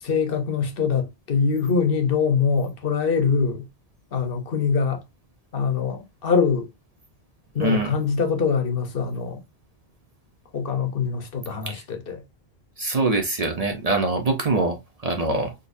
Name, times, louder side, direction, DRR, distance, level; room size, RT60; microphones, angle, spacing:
voice 1, 0.0-3.7 4.1-5.0 5.5-6.7 7.5-9.4 10.5-12.2, left 5 dB, 65° left, 1.0 m, -23 dB
voice 2, 7.6-7.9 11.7-11.8 12.8-15.5, right 2 dB, 45° right, 0.7 m, -24 dB
3.9 x 2.7 x 2.5 m
omnidirectional pair, 1.1 m